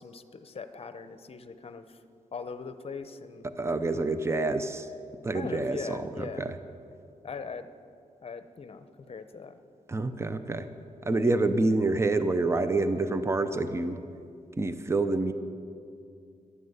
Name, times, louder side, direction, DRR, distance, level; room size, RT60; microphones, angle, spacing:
voice 1, 0.0-2.0 2.3-3.5 5.3-6.5 7.2-7.7 8.2-9.6, left 5 dB, 45° left, 11 dB, 0.8 m, -41 dB
voice 2, 3.5-4.9 5.2-6.6 9.9-10.7 11.0-14.0 14.6-15.3, right 2 dB, 20° right, 10 dB, 0.7 m, -27 dB
13.0 x 11.5 x 8.1 m, 2.5 s
wide cardioid pair, 110°, 14 cm